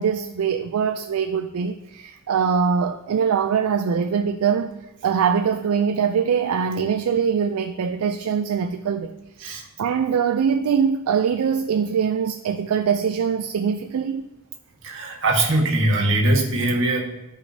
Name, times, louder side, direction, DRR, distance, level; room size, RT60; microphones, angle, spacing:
voice 1, 0.0-4.7 5.0-9.1 9.8-14.3, right 6 dB, 75° right, 0.4 m, -22 dB
voice 2, 14.8-17.0, right 2 dB, 60° right, 1.5 m, -21 dB
13.5 x 4.8 x 2.8 m
head